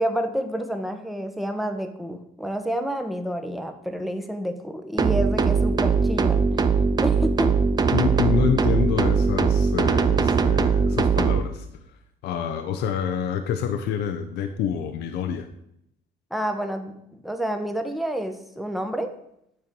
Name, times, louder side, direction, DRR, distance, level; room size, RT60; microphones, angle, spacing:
voice 1, 0.0-6.4 7.0-7.6 16.3-16.9 17.2-19.1, equal, ahead, 6 dB, 1.0 m, -29 dB
sound 1, 5.0-11.4, right 5 dB, 25° right, 0.5 m, -21 dB
voice 2, 7.9-11.7 12.2-15.5, left 8 dB, 80° left, 7 dB, 0.7 m, -27 dB
9.7 x 4.5 x 5.3 m, 0.77 s
cardioid pair, 110°, 17 cm